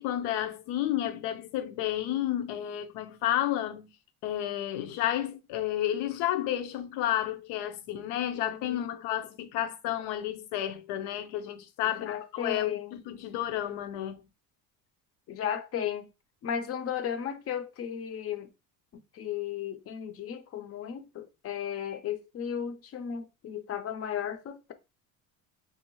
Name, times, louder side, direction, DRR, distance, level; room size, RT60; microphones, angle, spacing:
voice 1, 0.0-3.9 4.2-14.2, left 12 dB, 80° left, 0.6 m, -31 dB
voice 2, 8.4-9.0 12.0-13.0 15.3-16.1 16.4-18.5 18.9-24.7, left 8 dB, 35° left, 0.4 m, -35 dB
2.7 x 2.1 x 2.9 m
cardioid pair, 115°, 41 cm